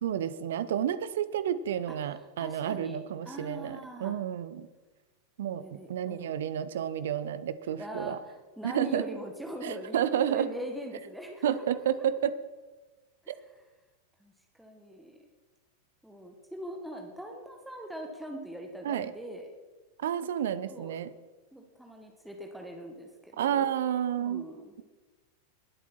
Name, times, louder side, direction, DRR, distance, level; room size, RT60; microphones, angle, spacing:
voice 1, 0.0-4.7 5.4-8.2 8.6-9.0 9.6-10.5 11.4-12.4 13.3-13.4 18.8-19.1 20.0-21.1 23.4-24.4, right 9 dB, 60° right, 15 dB, 0.8 m, -30 dB
voice 2, 1.9-3.0 3.3-4.2 5.6-6.4 7.8-12.1 13.2-13.5 14.2-14.3 14.6-15.2 16.0-19.5 20.7-20.9 21.5-23.7 24.2-24.7, equal, 5° right, 1 dB, 1.8 m, -42 dB
20.5 x 8.2 x 4.5 m, 1.2 s
figure-of-eight pair, 90°, 0 cm